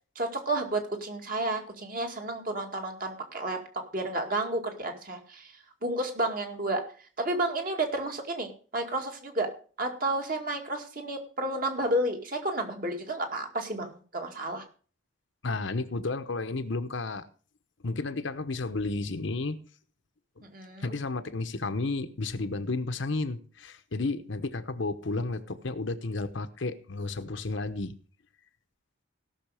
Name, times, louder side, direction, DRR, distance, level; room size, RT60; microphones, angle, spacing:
voice 1, 0.2-3.6 3.9-5.5 5.8-6.8 7.2-9.5 9.8-14.6 20.4-20.9, right 1 dB, 45° right, 3 dB, 2.1 m, -31 dB
voice 2, 15.4-17.3 17.8-19.6 20.8-27.9, left 3 dB, 65° left, 10 dB, 0.9 m, -32 dB
17.0 x 6.4 x 4.9 m, 0.41 s
head